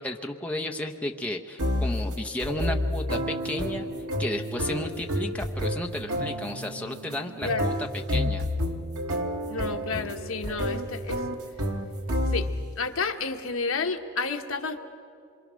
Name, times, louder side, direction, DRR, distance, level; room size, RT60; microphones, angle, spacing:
voice 1, 0.0-3.9 4.2-8.5, left 1 dB, 5° left, 3 dB, 0.8 m, -33 dB
sound 1, 1.6-12.8, equal, 90° right, 1.6 m, -30 dB
voice 2, 9.5-11.3 12.3-12.5 12.8-14.8, left 4 dB, 75° left, 5 dB, 1.2 m, -31 dB
26.5 x 23.5 x 6.3 m, 2.5 s
head